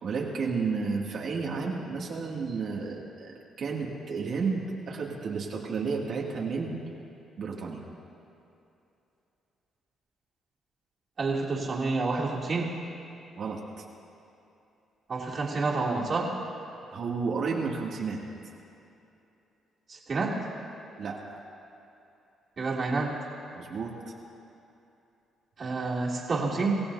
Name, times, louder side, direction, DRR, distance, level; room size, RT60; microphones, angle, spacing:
voice 1, 0.0-6.8 7.4-7.8 13.4-13.8 16.9-18.2 21.0-21.2 23.6-23.9, right 4 dB, 65° right, -3 dB, 2.4 m, -32 dB
voice 2, 11.2-12.8 15.1-16.4 19.9-20.4 22.6-23.2 25.6-26.8, right 3 dB, 45° right, -3 dB, 2.9 m, -28 dB
26.5 x 15.5 x 2.8 m, 2.8 s
cardioid pair, 90°, 0 cm